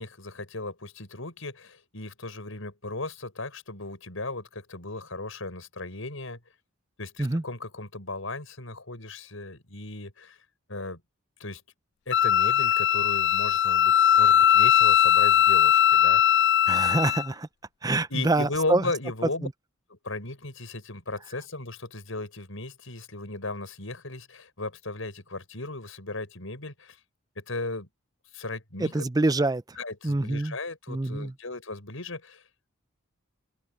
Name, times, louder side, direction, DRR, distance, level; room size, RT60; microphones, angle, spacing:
voice 1, 0.0-6.4 7.0-10.4 10.7-11.0 11.4-11.6 12.1-16.4 18.1-19.5 19.9-27.0 27.4-27.9 28.3-29.1 29.7-32.4, left 2 dB, 80° left, 6.0 m, -36 dB
Wind instrument woodwind instrument, 12.1-17.3, left 10 dB, 55° left, 0.3 m, -20 dB
voice 2, 16.7-17.5 17.8-18.8 19.4-19.5 28.8-29.6 30.0-30.6 30.9-31.3, right 2 dB, 20° right, 0.6 m, -25 dB
head